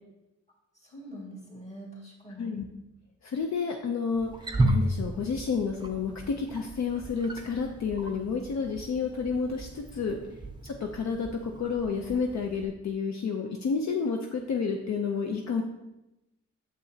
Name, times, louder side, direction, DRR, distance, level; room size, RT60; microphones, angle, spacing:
voice 1, 0.7-2.6 10.2-10.3, right 1 dB, 20° left, -4 dB, 1.9 m, -44 dB
voice 2, 3.2-10.2 10.6-15.6, left 5 dB, 60° left, 3 dB, 0.6 m, -30 dB
Wild animals, 4.1-12.7, right 1 dB, 15° right, 0.5 m, -34 dB
8.6 x 6.9 x 2.7 m, 0.96 s
wide cardioid pair, 155°, 31 cm